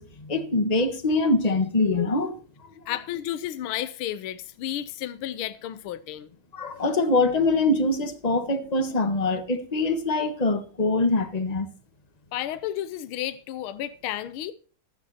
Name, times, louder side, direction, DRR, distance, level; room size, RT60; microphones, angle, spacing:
voice 1, 0.0-2.4 6.5-11.7, left 2 dB, 20° left, 1.3 m, -24 dB
voice 2, 2.9-6.3 12.3-14.5, left 12 dB, 80° left, 1.6 m, -32 dB
15.5 x 13.0 x 2.8 m
omnidirectional pair, 2.4 m